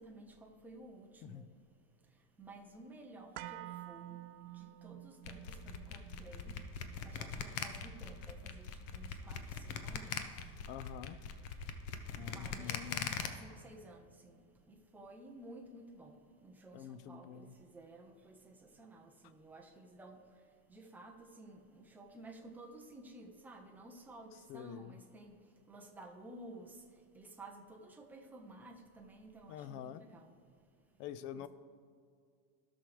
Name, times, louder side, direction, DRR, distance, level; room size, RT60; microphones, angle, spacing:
voice 1, 0.0-1.5 2.1-6.6 7.0-10.6 12.2-30.4 31.3-31.5, right 2 dB, 5° right, 2 dB, 0.3 m, -54 dB
sound 1, 3.3-11.4 11.7-11.8, right 15 dB, 90° right, 0.6 m, -52 dB
sound 2, 5.2-13.3, left 7 dB, 65° left, 1.0 m, -41 dB
voice 2, 10.7-11.2 12.2-13.1 16.7-17.5 24.5-25.0 29.5-30.0 31.0-31.5, left 10 dB, 50° left, 14 dB, 0.6 m, -46 dB
16.0 x 6.2 x 3.2 m, 2.2 s
supercardioid pair, 140°, 47 cm